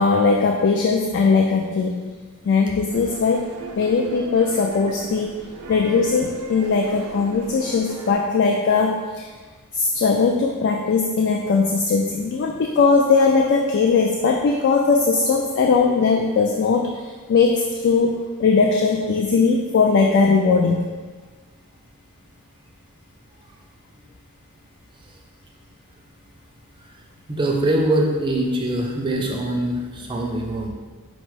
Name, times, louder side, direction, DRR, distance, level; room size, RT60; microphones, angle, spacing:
voice 1, 0.0-2.1 2.4-3.4 3.8-5.4 5.7-9.3 9.7-16.9 17.3-18.1 18.4-20.8, left 4 dB, 55° left, 1 dB, 0.3 m, -19 dB
sound 1, 2.9-8.1, right 3 dB, 80° right, 0.5 m, -39 dB
voice 2, 27.3-30.7, right 1 dB, 20° right, 0 dB, 0.4 m, -23 dB
5.3 x 2.0 x 4.6 m, 1.4 s
head